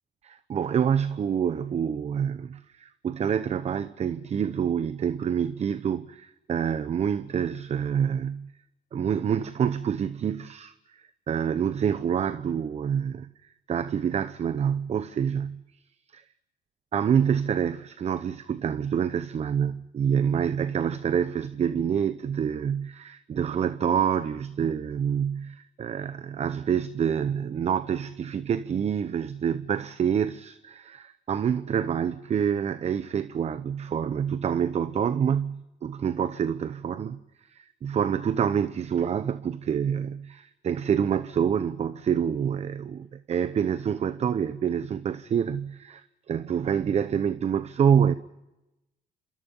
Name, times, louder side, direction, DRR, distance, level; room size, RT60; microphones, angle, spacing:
voice 1, 0.2-8.5 8.9-10.7 11.3-13.3 13.7-15.6 16.1-16.2 16.9-37.2 37.5-48.1, right 8 dB, 40° right, 0.9 m, -27 dB
27.5 x 27.0 x 5.5 m
cardioid pair, 110°, 17 cm